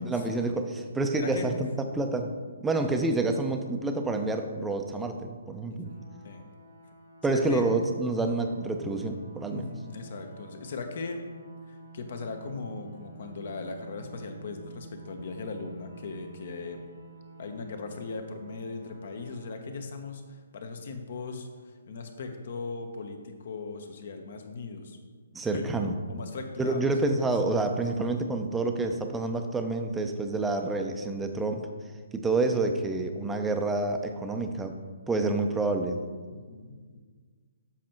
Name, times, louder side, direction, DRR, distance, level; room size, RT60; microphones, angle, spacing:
voice 1, 0.0-1.5 1.9-2.3 2.6-5.9 7.2-9.7 25.3-25.9 26.6-31.6 32.1-34.7 35.1-36.0, right 2 dB, 10° right, 5 dB, 0.6 m, -28 dB
voice 2, 1.2-1.6 5.9-6.4 7.3-7.6 9.5-11.2 11.7-16.8 17.4-25.0 25.4-25.6 26.1-26.9 36.3-37.0, left 4 dB, 60° left, 5 dB, 1.0 m, -38 dB
sound 1, 5.8-19.5, right 3 dB, 80° right, 1.3 m, -50 dB
7.4 x 5.3 x 4.5 m, 1.5 s
hypercardioid pair, 145°, 0 cm